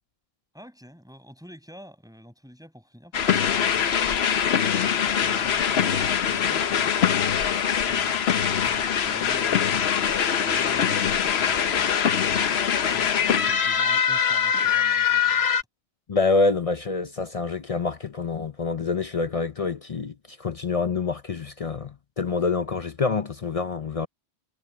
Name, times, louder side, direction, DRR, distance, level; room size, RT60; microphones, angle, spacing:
voice 1, 0.5-4.5 4.9-7.1 7.8-9.9 10.3-12.1 12.8-15.5, equal, 5° right, 7.3 m, -47 dB
sound 1, 3.1-15.6, left 8 dB, 70° left, 1.1 m, -23 dB
voice 2, 16.1-24.1, left 4 dB, 40° left, 0.6 m, -26 dB
omnidirectional pair, 1.1 m